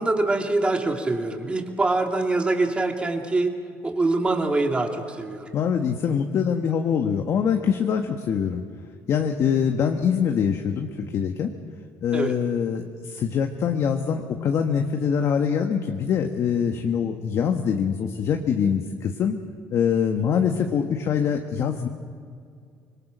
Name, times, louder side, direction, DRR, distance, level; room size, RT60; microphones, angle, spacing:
voice 1, 0.0-3.5 3.8-5.5 12.1-12.4, right 2 dB, 20° right, 2 dB, 2.8 m, -24 dB
voice 2, 5.5-8.6 9.1-11.5 12.0-19.4 19.7-21.9, left 7 dB, 50° left, 5 dB, 1.4 m, -24 dB
25.5 x 22.0 x 6.2 m, 2.3 s
cardioid pair, 105°, 6 cm